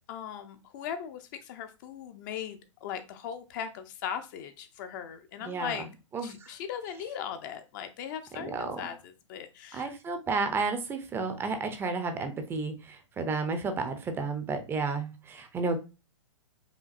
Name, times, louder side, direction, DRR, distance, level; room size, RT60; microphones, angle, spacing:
voice 1, 0.1-5.9 6.2-9.9, left 8 dB, 35° left, 8 dB, 0.5 m, -39 dB
voice 2, 8.4-8.8 9.7-15.8, right 4 dB, 15° right, 7 dB, 0.5 m, -32 dB
4.9 x 2.5 x 2.4 m, 0.30 s
figure-of-eight pair, 115°, 16 cm